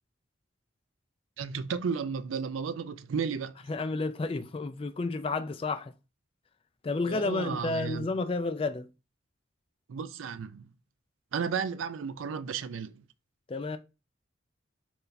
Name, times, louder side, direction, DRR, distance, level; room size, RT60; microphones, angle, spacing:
voice 1, 1.4-3.5 7.1-8.1 9.9-10.7 11.3-13.0, right 6 dB, 90° right, 0.4 m, -33 dB
voice 2, 3.7-5.9 6.8-8.9 13.5-13.8, left 3 dB, 30° left, 0.3 m, -31 dB
4.5 x 3.2 x 2.6 m
head